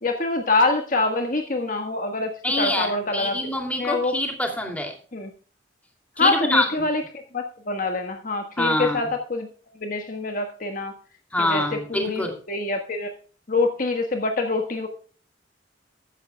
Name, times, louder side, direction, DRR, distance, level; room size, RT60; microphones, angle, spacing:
voice 1, 0.0-2.3 2.6-3.4 3.8-4.1 5.1-5.3 6.2-7.0 7.3-9.5 9.8-10.9 11.4-13.1 13.5-14.9, left 3 dB, 45° left, 4 dB, 1.4 m, -25 dB
voice 2, 2.4-4.9 6.2-6.9 8.6-9.1 11.3-12.4, left 1 dB, 10° left, 2 dB, 2.6 m, -25 dB
15.0 x 11.5 x 2.2 m, 0.40 s
head